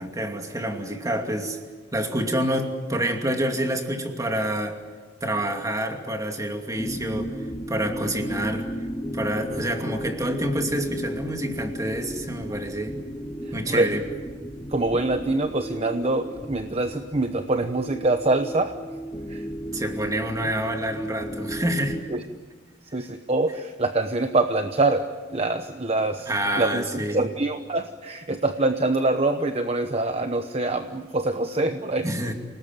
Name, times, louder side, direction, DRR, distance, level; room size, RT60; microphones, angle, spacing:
voice 1, 0.0-1.6 1.9-4.8 5.2-7.4 7.7-8.7 9.1-13.0 13.5-14.1 19.7-22.0 26.3-27.3 32.0-32.3, right 1 dB, 20° right, 4 dB, 2.6 m, -27 dB
sound 1, 6.8-22.0, equal, 15° left, 1.7 m, -35 dB
voice 2, 14.7-18.7 19.3-19.5 22.1-22.2 22.9-26.3 26.6-32.1, right 2 dB, 35° right, 8 dB, 1.0 m, -25 dB
28.5 x 19.0 x 9.0 m, 1.4 s
head